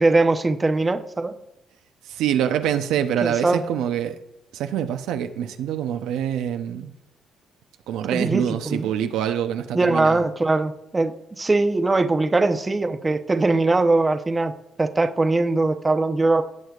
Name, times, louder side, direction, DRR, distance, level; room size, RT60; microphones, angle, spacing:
voice 1, 0.0-1.4 3.2-3.6 8.1-8.9 9.7-14.5 14.8-16.4, right 3 dB, 20° right, 0.7 m, -21 dB
voice 2, 2.1-4.1 4.5-6.9 7.9-10.2, right 9 dB, 90° right, 0.6 m, -25 dB
17.0 x 6.3 x 2.4 m
cardioid pair, 90°, 0 cm